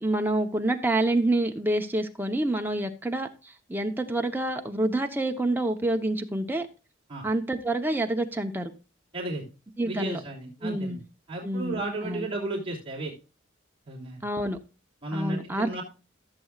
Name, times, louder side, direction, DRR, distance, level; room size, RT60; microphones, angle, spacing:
voice 1, 0.0-6.7 7.2-8.7 9.8-10.2 10.6-11.0 11.4-12.3 14.2-14.6 15.1-15.8, right 1 dB, 10° right, 0.9 m, -27 dB
voice 2, 9.1-9.4 9.8-11.0 11.3-13.1 13.8-14.2 15.0-15.8, right 2 dB, 25° right, 3.2 m, -33 dB
14.0 x 7.8 x 2.5 m
head